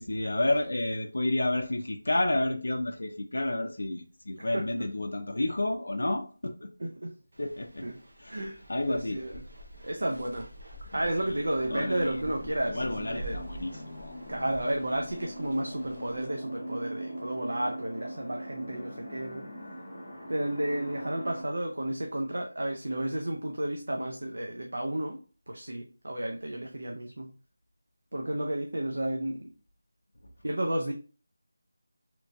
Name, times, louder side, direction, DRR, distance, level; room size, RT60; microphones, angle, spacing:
voice 1, 0.0-6.7 7.4-7.9 8.2-9.2 10.9-11.0 11.3-11.4 11.7-12.2 12.7-14.2, left 1 dB, 80° left, 0.4 m, -30 dB
voice 2, 4.4-4.9 6.8-7.2 7.8-8.0 8.3-8.6 8.9-9.4 9.8-10.5 10.9-13.4 14.3-19.5 20.3-25.2 25.5-27.3 28.1-29.5 30.4-30.9, right 1 dB, 80° right, 0.4 m, -32 dB
sound 1, 7.3-16.3, equal, 60° right, 0.8 m, -47 dB
sound 2, 11.5-21.4, right 1 dB, 20° left, 0.7 m, -41 dB
2.9 x 2.5 x 2.3 m
figure-of-eight pair, 175°, 0 cm